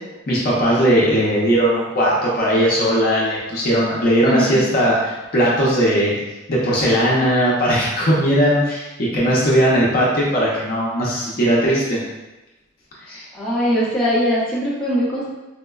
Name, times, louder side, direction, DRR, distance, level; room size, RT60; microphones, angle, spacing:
voice 1, 0.3-6.1 6.5-12.0 13.1-13.2, equal, 45° left, -6 dB, 0.6 m, -18 dB
voice 2, 4.2-4.6 13.3-15.3, equal, 5° left, -10 dB, 0.8 m, -20 dB
4.2 x 2.1 x 2.3 m, 1.0 s
head